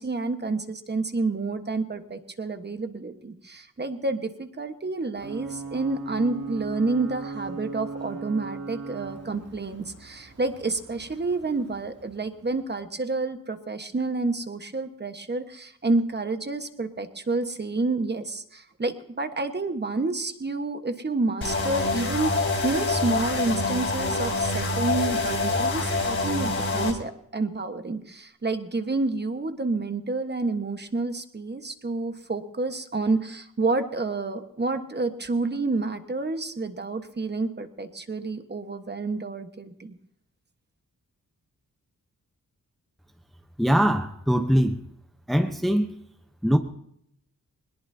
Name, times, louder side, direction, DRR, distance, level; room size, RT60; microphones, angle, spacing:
voice 1, 0.0-39.9, right 3 dB, 30° right, 7 dB, 1.3 m, -29 dB
Ocean / Boat Water vehicle / Alarm, 5.1-12.7, right 4 dB, 50° right, 2.7 m, -39 dB
sound 1, 21.4-26.9, left 3 dB, 40° left, 3.9 m, -26 dB
voice 2, 43.6-44.8 45.3-45.9 46.4-46.6, equal, ahead, 6 dB, 0.9 m, -22 dB
22.0 x 21.0 x 2.8 m, 0.72 s
wide cardioid pair, 155°, 33 cm